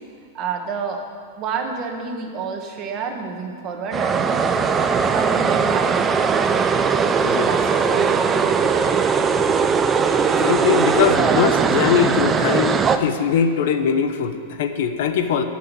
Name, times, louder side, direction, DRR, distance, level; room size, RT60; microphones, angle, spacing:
voice 1, 0.3-1.0 1.4-4.5 5.1-6.8 7.4-9.2, right 5 dB, 30° right, 3 dB, 1.6 m, -30 dB
sound 1, 3.9-13.0, right 5 dB, 15° right, 0.6 m, -19 dB
voice 2, 10.4-15.4, left 7 dB, 60° left, 8 dB, 1.0 m, -21 dB
13.5 x 6.3 x 9.8 m, 2.1 s
supercardioid pair, 155°, 0 cm